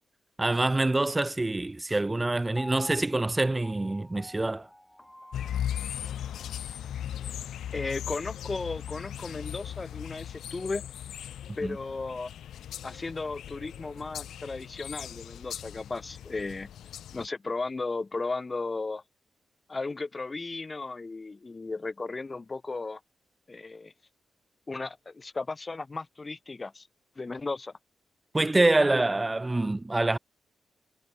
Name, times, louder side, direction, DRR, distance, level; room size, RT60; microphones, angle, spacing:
voice 1, 0.4-4.7 11.6-11.8 28.3-30.2, right 2 dB, 20° right, 0.4 m, -26 dB
Piano, 2.6-6.7 7.1-7.2, left 1 dB, 5° left, 3.2 m, -47 dB
sound 1, 5.3-17.3, left 10 dB, 80° left, 1.5 m, -38 dB
voice 2, 7.7-10.8 11.6-12.3 12.8-16.7 17.1-19.0 19.7-23.0 23.5-23.9 24.7-26.9 27.2-27.7, left 3 dB, 30° left, 0.9 m, -35 dB
cardioid pair, 65°, 0 cm